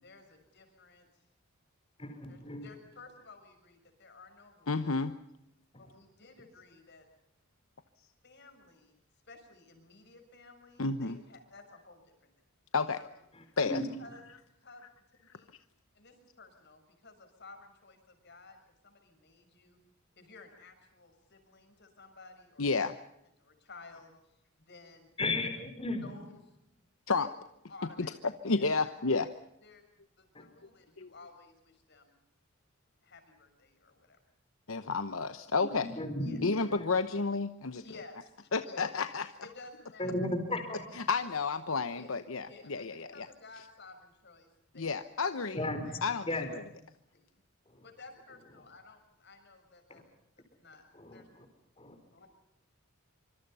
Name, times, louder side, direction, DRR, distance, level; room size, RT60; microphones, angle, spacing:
voice 1, 0.0-1.2 2.3-4.9 5.8-7.1 8.2-9.0 9.3-12.3 13.0-13.1 14.0-14.3 14.6-14.9 15.3-15.5 15.9-19.8 20.2-22.6 23.4-25.1 26.0-26.3 26.8-26.9 27.2-27.3 27.7-28.1 28.4-29.3 29.6-32.1 33.0-34.2 36.2-36.4 37.6-38.3 38.6-38.9 39.4-40.1 41.1-41.3 41.9-42.2 42.4-44.9 45.2-45.6 45.9-46.1 47.1-47.2 47.8-50.0 50.4-50.8 51.1-51.3 52.1-52.3, left 3 dB, 55° left, 6 dB, 6.2 m, -54 dB
voice 2, 2.0-2.7 13.3-13.8 25.2-26.1 30.3-30.4 35.8-36.9 40.0-40.9 45.5-45.8 46.3-46.5 47.7-47.9 49.9-50.0 51.0-51.4 51.8-52.0, left 2 dB, 25° left, 6 dB, 4.5 m, -35 dB
voice 3, 4.7-5.2 10.8-11.2 12.7-13.0 13.6-13.8 22.6-23.0 27.1-27.3 28.0-28.1 28.4-29.3 31.0-31.1 34.7-35.9 36.4-37.8 38.5-39.3 41.0-43.3 44.7-45.6 46.0-46.3, left 4 dB, 75° left, 10 dB, 1.0 m, -31 dB
25.5 x 25.5 x 5.6 m, 0.80 s
head